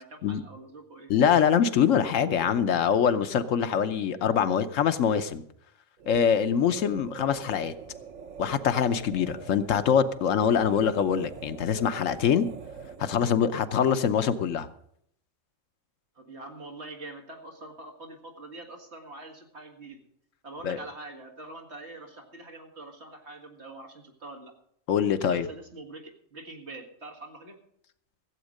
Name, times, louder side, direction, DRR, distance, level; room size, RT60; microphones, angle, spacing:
voice 1, 0.0-1.1 16.1-20.0 20.4-24.5 25.2-27.6, right 2 dB, 55° right, 2 dB, 2.3 m, -44 dB
voice 2, 1.1-5.4 6.1-7.7 8.4-12.5 13.0-14.7 20.6-20.8 24.9-25.5, left 8 dB, 80° left, 11 dB, 1.1 m, -24 dB
sound 1, 6.0-13.3, right 6 dB, 90° right, 1.3 m, -44 dB
15.5 x 8.1 x 6.4 m, 0.69 s
omnidirectional pair, 1.3 m